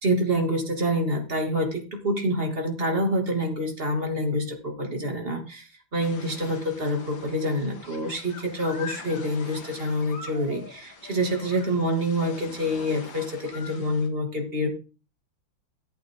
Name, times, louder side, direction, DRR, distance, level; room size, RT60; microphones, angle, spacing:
voice 1, 0.0-14.7, equal, 30° right, 4 dB, 2.8 m, -27 dB
sound 1, 6.0-14.1, left 5 dB, 85° left, 2.6 m, -43 dB
15.0 x 8.3 x 3.8 m, 0.33 s
omnidirectional pair, 2.1 m